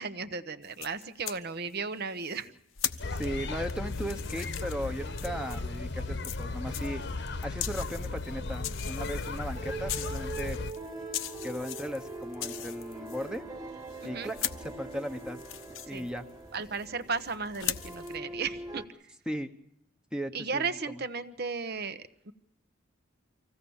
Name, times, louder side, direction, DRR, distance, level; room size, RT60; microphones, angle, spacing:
voice 1, 0.0-2.5 14.0-14.3 15.9-16.1 16.5-18.8 20.3-22.3, right 5 dB, 50° right, 12 dB, 1.1 m, -35 dB
sound 1, 0.6-1.4 2.2-5.8 6.2-13.4 13.9-16.9 17.2-18.2, left 12 dB, 80° left, 1.1 m, -39 dB
sound 2, 3.0-10.7, left 3 dB, 55° left, 1.2 m, -36 dB
voice 2, 3.1-7.1 7.4-10.6 11.4-13.5 14.0-15.4 15.9-16.3 19.3-19.5 20.1-21.0, equal, 5° right, 6 dB, 1.0 m, -37 dB
sound 3, 8.0-18.9, right 2 dB, 20° right, 1.9 m, -43 dB
25.0 x 16.5 x 7.2 m, 0.78 s
head